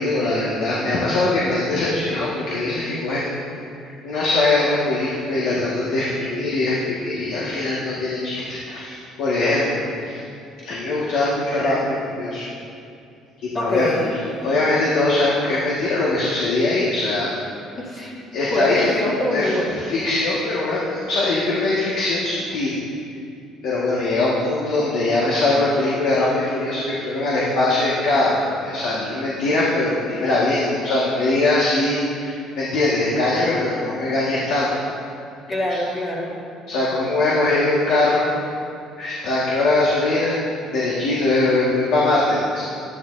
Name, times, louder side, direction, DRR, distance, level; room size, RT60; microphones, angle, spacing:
voice 1, 0.0-3.3 4.0-10.2 10.6-12.5 13.4-17.3 18.3-18.9 19.3-22.8 23.6-34.7 36.7-38.3 39.0-40.4 40.7-42.6, left 2 dB, 70° left, -6 dB, 1.7 m, -21 dB
voice 2, 13.5-14.2 17.7-18.2 18.5-19.8 35.5-36.4, left 1 dB, 35° left, -4 dB, 1.9 m, -25 dB
13.0 x 10.5 x 2.7 m, 2.5 s
cardioid pair, 115°, 0 cm